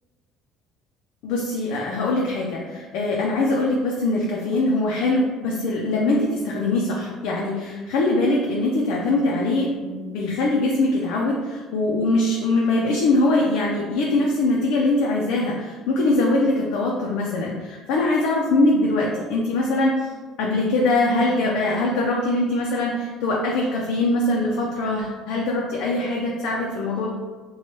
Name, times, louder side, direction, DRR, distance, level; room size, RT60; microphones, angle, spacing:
voice 1, 1.2-20.1 20.4-27.1, left 2 dB, 80° left, -3 dB, 0.4 m, -22 dB
2.9 x 2.2 x 2.9 m, 1.4 s
cardioid pair, 130°, 0 cm